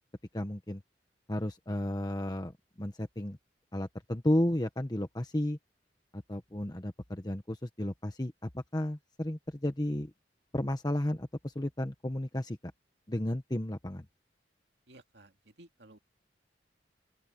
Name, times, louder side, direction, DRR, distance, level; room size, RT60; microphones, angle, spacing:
voice 1, 0.3-0.8 1.3-2.5 2.8-3.4 3.7-5.6 6.1-10.1 10.5-12.6 13.1-14.0, left 1 dB, 25° left, 1.2 m, -33 dB
voice 2, 14.9-16.0, right 2 dB, 75° right, 2.5 m, -56 dB
open air
head